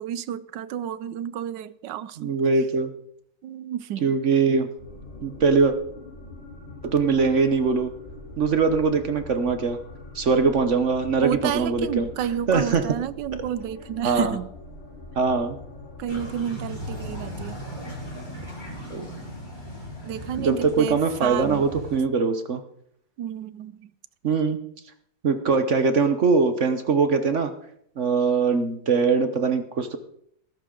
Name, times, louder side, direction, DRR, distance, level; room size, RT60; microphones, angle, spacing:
voice 1, 0.0-2.4 3.4-4.1 11.2-14.5 16.0-17.6 20.0-21.7 23.2-23.9, right 10 dB, 80° right, 1.3 m, -31 dB
voice 2, 2.2-2.9 4.0-4.7 5.2-5.7 6.8-7.9 8.4-9.8 10.1-12.1 12.5-12.8 14.0-14.4 15.2-15.6 18.9-19.0 20.4-22.6 24.2-24.6 25.2-27.5 28.0-30.0, right 4 dB, 50° right, 1.1 m, -22 dB
sound 1, 4.8-16.3, left 2 dB, 45° left, 4.2 m, -42 dB
sound 2, 16.1-22.0, equal, 25° left, 3.7 m, -37 dB
19.0 x 11.0 x 3.8 m
omnidirectional pair, 1.9 m